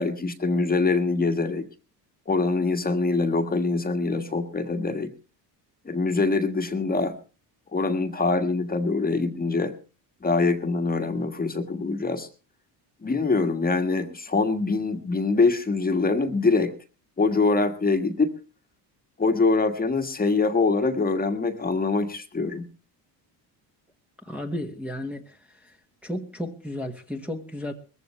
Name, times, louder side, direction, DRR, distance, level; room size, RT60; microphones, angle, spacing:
voice 1, 0.0-1.7 2.3-5.1 5.8-7.1 7.7-9.8 10.2-12.3 13.0-16.7 17.2-18.3 19.2-22.7, left 3 dB, 20° left, 7 dB, 1.6 m, -24 dB
voice 2, 24.2-25.8 26.0-27.7, left 1 dB, 5° right, 0 dB, 1.4 m, -34 dB
20.5 x 15.0 x 3.2 m, 0.35 s
cardioid pair, 120°, 45 cm